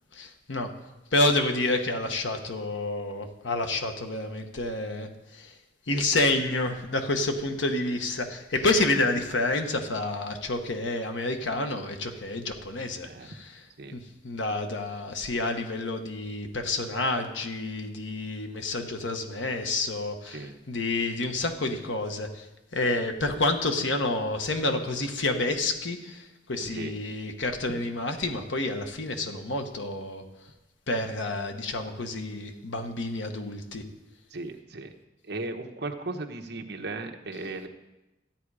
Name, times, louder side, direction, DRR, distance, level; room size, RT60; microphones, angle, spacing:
voice 1, 0.1-0.7 1.1-5.1 5.3-5.5 5.9-13.6 13.9-22.5 22.7-30.2 30.9-33.8, left 2 dB, 85° left, 5 dB, 1.3 m, -29 dB
voice 2, 13.0-13.4 13.8-13.9 20.3-20.5 26.6-26.9 27.7-27.8 34.3-34.9 35.2-37.7, right 2 dB, 60° right, 3 dB, 1.1 m, -36 dB
13.5 x 8.8 x 4.9 m, 1.0 s
head